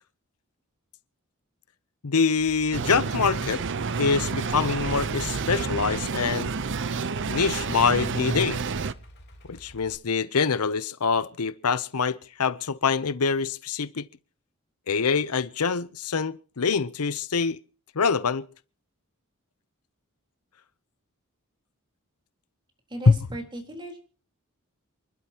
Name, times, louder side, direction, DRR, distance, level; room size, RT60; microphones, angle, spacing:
voice 1, 2.0-3.6 4.0-6.5 7.3-8.6 9.5-14.1 14.9-17.6 17.9-18.4 23.1-23.2, left 5 dB, 85° left, 0.8 m, -25 dB
Idling, 2.4-9.9, equal, 50° left, 3.5 m, -49 dB
sound 1, 2.7-8.9, right 4 dB, 55° right, 0.7 m, -29 dB
voice 2, 22.9-24.0, right 1 dB, 20° right, 4.0 m, -36 dB
28.0 x 12.0 x 2.9 m
head